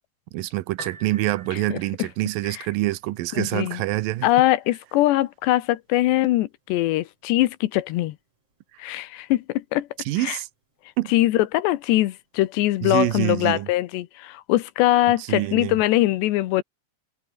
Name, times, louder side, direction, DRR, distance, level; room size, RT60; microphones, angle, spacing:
voice 1, 0.3-4.3 10.1-10.5 11.0-11.1 12.8-13.7 15.3-15.8, right 17 dB, 75° right, 2.2 m, -26 dB
Piano, 0.6-13.7, right 3 dB, 35° right, 8.0 m, -51 dB
voice 2, 3.4-3.8 4.2-8.2 8.8-9.9 10.2-10.4 11.1-16.6, left 16 dB, 85° left, 3.3 m, -22 dB
omnidirectional pair, 4.8 m